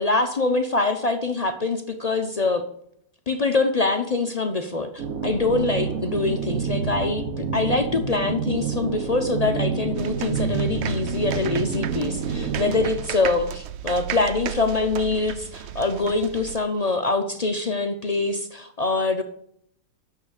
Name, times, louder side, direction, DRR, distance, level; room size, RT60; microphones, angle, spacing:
voice 1, 0.0-2.6 3.3-19.2, left 3 dB, 70° left, 6 dB, 0.3 m, -24 dB
sound 1, 5.0-13.0, right 5 dB, 60° right, 1.4 m, -28 dB
sound 2, 9.9-16.6, right 10 dB, 80° right, 0.6 m, -34 dB
9.2 x 6.6 x 6.4 m, 0.73 s
omnidirectional pair, 1.7 m